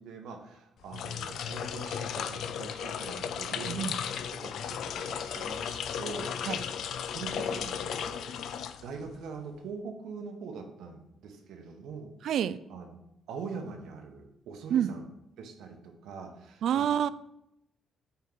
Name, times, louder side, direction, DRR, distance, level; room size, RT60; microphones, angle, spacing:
voice 1, 0.0-6.6 7.1-8.3 8.8-12.1 12.7-12.9 13.3-15.0 15.4-16.9, right 5 dB, 90° right, 4 dB, 1.1 m, -43 dB
sound 1, 0.8-9.2, left 8 dB, 75° left, 0.4 m, -35 dB
voice 2, 3.6-4.0 6.4-6.6 12.2-12.6 14.7-14.9 16.6-17.1, right 9 dB, 70° right, 16 dB, 0.3 m, -27 dB
5.7 x 4.6 x 5.8 m, 0.83 s
cardioid pair, 130°, 0 cm